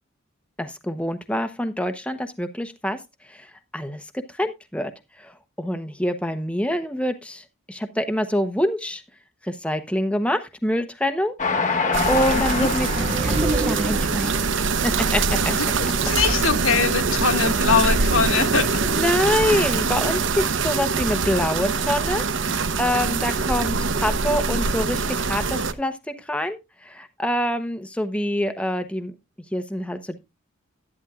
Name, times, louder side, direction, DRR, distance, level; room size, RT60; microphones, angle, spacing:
voice 1, 0.6-3.0 3.3-3.5 3.7-4.1 4.3-4.9 5.2-9.0 9.4-11.8 12.1-12.9 13.2-14.4 14.8-15.5 18.8-29.1 29.5-30.2, equal, 5° left, 0.9 m, -26 dB
Train, 11.4-14.8 15.4-15.5 15.7-15.8, left 4 dB, 35° left, 1.3 m, -27 dB
sound 1, 11.9-25.7, right 4 dB, 65° right, 0.9 m, -23 dB
voice 2, 12.3-12.7 15.5-15.7 16.0-18.7 19.5-19.7, left 5 dB, 85° left, 1.7 m, -22 dB
sound 2, 12.6-14.6 15.6-17.1, right 2 dB, 30° right, 0.7 m, -29 dB
11.5 x 11.5 x 2.5 m
head